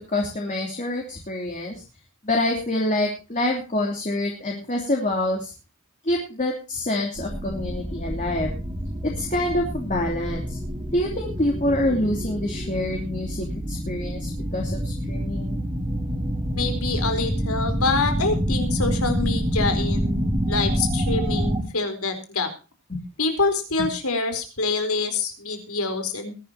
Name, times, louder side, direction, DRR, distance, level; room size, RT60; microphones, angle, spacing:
voice 1, 0.1-1.8 2.2-5.5 6.0-8.5 9.0-10.6 10.9-15.6 22.9-23.0 23.8-23.9, left 1 dB, 35° left, 0 dB, 3.0 m, -26 dB
sound 1, 7.2-21.6, equal, 25° right, 2.9 m, -27 dB
voice 2, 16.5-22.5 23.2-26.3, left 3 dB, 85° left, 7 dB, 4.1 m, -26 dB
21.5 x 11.5 x 2.9 m, 0.32 s
head